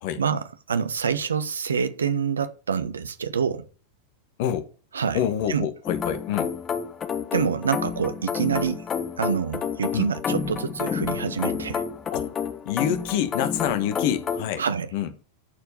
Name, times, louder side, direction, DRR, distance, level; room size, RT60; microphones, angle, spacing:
voice 1, 0.2-3.7 4.9-5.2 5.5-5.7 7.3-8.9 9.2-11.8 14.6-14.9, right 6 dB, 70° right, 1.1 m, -26 dB
voice 2, 5.1-6.5 9.9-10.1 12.1-12.3 12.6-14.6 14.9-15.1, left 10 dB, 50° left, 1.4 m, -26 dB
sound 1, 5.9-14.5, left 6 dB, 25° left, 1.2 m, -30 dB
13.5 x 4.7 x 7.0 m
figure-of-eight pair, 90°, 0 cm